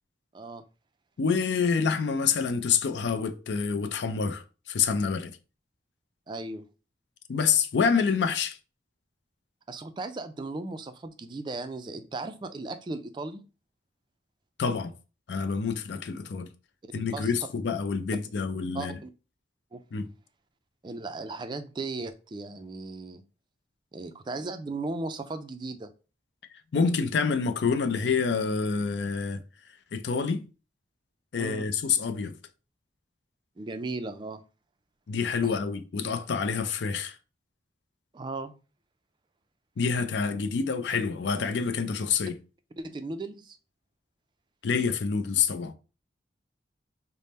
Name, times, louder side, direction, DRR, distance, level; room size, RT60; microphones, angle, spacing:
voice 1, 0.3-0.6 6.3-6.6 9.7-13.4 16.9-17.3 18.7-19.1 19.7-19.8 20.8-23.2 23.9-25.9 31.3-31.7 33.6-34.4 35.4-35.5 38.1-38.5 42.8-43.6, right 3 dB, 25° right, 0.3 m, -36 dB
voice 2, 1.2-5.4 7.3-8.6 14.6-14.9 15.3-16.5 16.9-19.0 19.9-20.1 26.7-29.4 29.9-30.4 31.3-32.4 35.1-37.2 39.8-42.4 44.6-45.7, left 5 dB, 75° left, 0.4 m, -27 dB
3.5 x 2.0 x 4.1 m
head